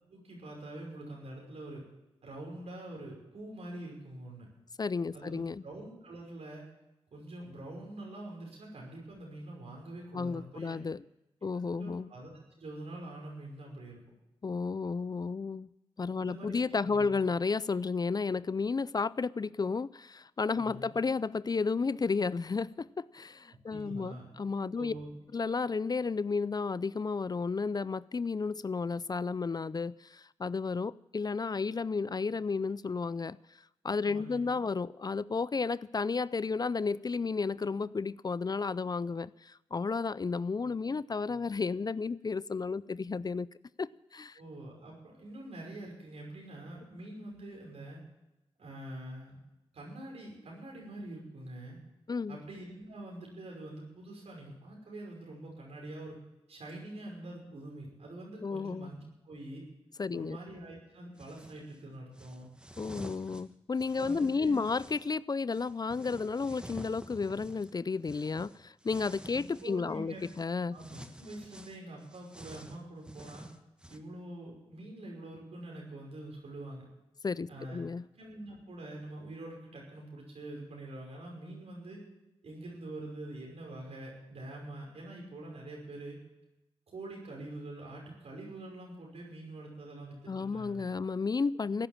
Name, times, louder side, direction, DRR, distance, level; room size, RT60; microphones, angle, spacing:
voice 1, 0.1-1.8 2.2-4.5 5.1-6.7 7.1-10.8 11.5-14.0 16.2-17.1 20.5-20.9 23.7-24.3 24.8-25.1 34.0-34.5 44.4-48.0 48.6-49.4 49.7-51.8 52.3-56.2 56.5-59.7 60.1-62.5 64.0-64.6 69.3-70.2 70.7-73.5 73.9-76.8 77.5-77.8 78.2-82.0 82.4-86.2 86.9-90.8, right 1 dB, 75° right, 5.6 m, -45 dB
voice 2, 4.8-5.6 10.1-11.0 11.4-12.1 14.4-15.7 16.0-24.9 25.3-33.4 33.8-43.5 43.8-44.4 52.1-52.4 58.4-58.9 60.0-60.4 62.8-70.8 77.2-78.0 90.3-91.9, left 4 dB, 40° left, 0.4 m, -32 dB
sound 1, 61.2-61.7 62.1-65.1 65.5-69.8 70.2-70.5 70.8-74.0, equal, 10° right, 1.4 m, -50 dB
16.0 x 9.8 x 7.4 m
cardioid pair, 45°, 11 cm